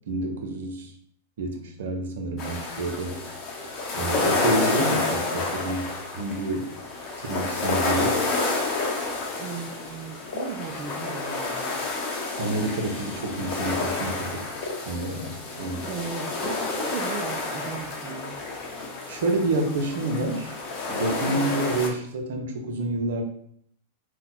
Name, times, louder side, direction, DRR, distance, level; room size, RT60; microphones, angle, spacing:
voice 1, 0.1-0.9 1.4-3.3 3.9-6.7 7.2-8.2 12.4-14.4 14.9-15.9 19.1-20.6 20.9-23.2, right 2 dB, 70° right, 3 dB, 0.7 m, -28 dB
sound 1, 2.4-21.9, left 3 dB, 40° left, 0.8 m, -30 dB
sound 2, 7.6-9.4 9.8-11.2 12.0-12.1 12.3-12.7 13.0-13.4 13.6-13.9 14.6-15.6 15.8-16.7 17.0-17.1 17.5-17.8 18.3-18.7, left 3 dB, 70° left, 0.5 m, -36 dB
voice 2, 9.4-11.8 15.8-18.4 21.3-21.5, right 6 dB, 45° right, 0 dB, 0.4 m, -37 dB
2.8 x 2.3 x 4.0 m, 0.65 s
hypercardioid pair, 115°, 0 cm